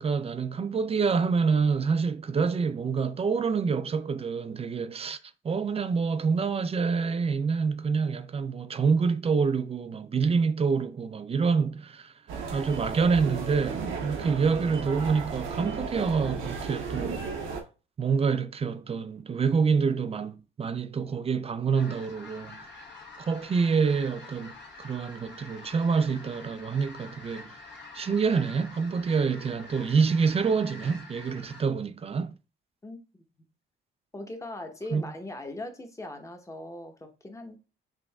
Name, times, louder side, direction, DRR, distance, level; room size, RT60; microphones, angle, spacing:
voice 1, 0.0-5.2 5.4-12.1 12.5-17.3 18.0-22.7 23.2-27.6 27.9-32.3 34.9-35.0, right 5 dB, 30° right, 0.4 m, -27 dB
sound 1, 12.3-17.6, right 5 dB, 80° right, 0.8 m, -34 dB
sound 2, 21.7-31.6, left 3 dB, 60° left, 1.4 m, -47 dB
voice 2, 32.8-33.2 34.1-37.6, left 1 dB, 15° left, 0.9 m, -40 dB
6.0 x 2.5 x 2.3 m
cardioid pair, 90°, 20 cm